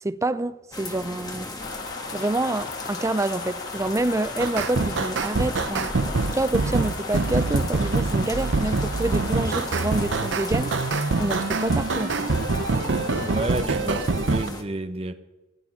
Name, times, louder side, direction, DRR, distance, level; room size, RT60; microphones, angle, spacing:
voice 1, 0.0-1.5 2.1-5.9 6.3-10.8 11.2-12.3, right 2 dB, 15° right, 0.5 m, -27 dB
sound 1, 0.7-14.6, left 2 dB, 20° left, 1.5 m, -37 dB
sound 2, 1.6-13.5, left 4 dB, 60° left, 1.2 m, -37 dB
sound 3, 4.4-14.5, right 3 dB, 65° right, 0.7 m, -25 dB
voice 2, 13.2-15.1, right 2 dB, 30° right, 1.0 m, -30 dB
15.5 x 8.8 x 9.9 m
head